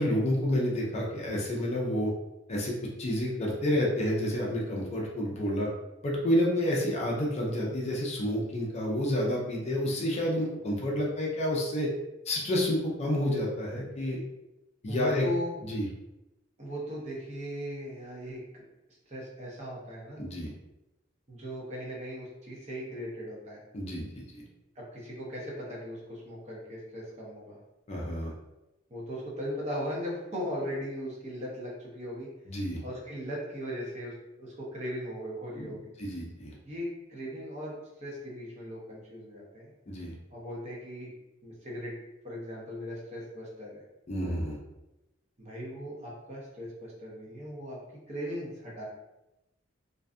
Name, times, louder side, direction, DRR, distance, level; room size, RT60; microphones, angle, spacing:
voice 1, 0.0-2.1 2.5-5.7 6.0-11.9 12.3-14.2 14.8-15.3 15.6-15.9 20.2-20.5 23.7-24.4 27.9-28.3 32.5-32.8 35.5-35.7 36.0-36.5 39.9-40.1 44.1-44.6, left 1 dB, 35° left, -2 dB, 0.4 m, -29 dB
voice 2, 14.9-15.6 16.6-18.6 19.1-20.2 21.3-23.6 24.8-27.6 28.9-32.3 32.8-35.9 36.6-39.7 40.3-41.1 41.4-42.0 42.2-43.8 45.4-47.8 48.1-48.9, equal, 35° right, -5 dB, 0.8 m, -38 dB
2.5 x 2.2 x 2.4 m, 0.95 s
head